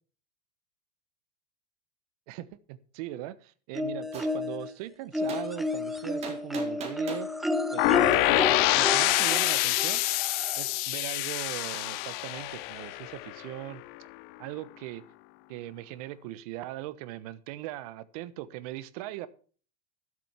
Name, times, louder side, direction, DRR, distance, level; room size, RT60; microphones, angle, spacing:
voice 1, 2.3-7.3 7.7-10.0 10.5-13.8 14.4-15.0 15.5-19.3, right 15 dB, 60° right, 17 dB, 1.1 m, -40 dB
sound 1, 3.7-4.7 5.1-10.8 12.0-12.1 12.5-12.6, left 1 dB, ahead, 1.0 m, -32 dB
Gunshot gunfire, 4.1-4.3 5.3-5.4 6.2-7.3 8.1-8.2, right 5 dB, 30° right, 4.0 m, -39 dB
sound 2, 7.8-13.6, left 21 dB, 50° left, 0.6 m, -26 dB
13.0 x 7.9 x 5.7 m, 0.41 s
supercardioid pair, 125°, 21 cm